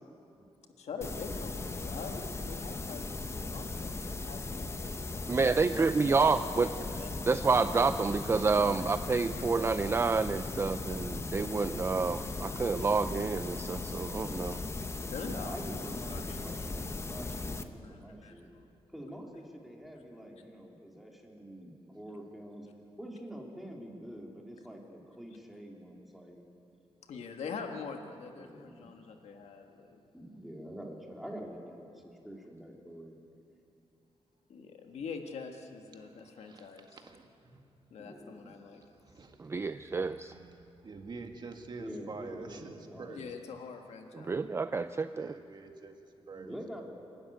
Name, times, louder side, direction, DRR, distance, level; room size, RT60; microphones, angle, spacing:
voice 1, 0.8-7.5 9.4-9.5 15.0-15.5 15.9-16.5 17.8-18.3 27.0-30.0 34.5-37.0 37.9-38.8 43.1-44.7, left 5 dB, 80° left, 4 dB, 1.6 m, -45 dB
sound 1, 1.0-17.6, left 3 dB, 25° left, 0.9 m, -38 dB
voice 2, 1.5-2.0 12.2-12.8 15.2-18.5 18.9-22.7 23.0-26.5 28.3-28.9 30.1-33.2 36.4-36.6 38.0-38.6 41.8-43.3 44.3-44.9 46.3-46.8, equal, ahead, -1 dB, 2.8 m, -46 dB
voice 3, 5.3-6.7 7.3-14.6 39.4-40.3 44.2-45.3, right 4 dB, 25° right, 11 dB, 0.4 m, -29 dB
voice 4, 36.0-37.7 39.0-43.3 45.1-46.5, right 4 dB, 40° right, 4 dB, 1.9 m, -48 dB
27.5 x 12.5 x 9.6 m, 2.7 s
wide cardioid pair, 135°, 11 cm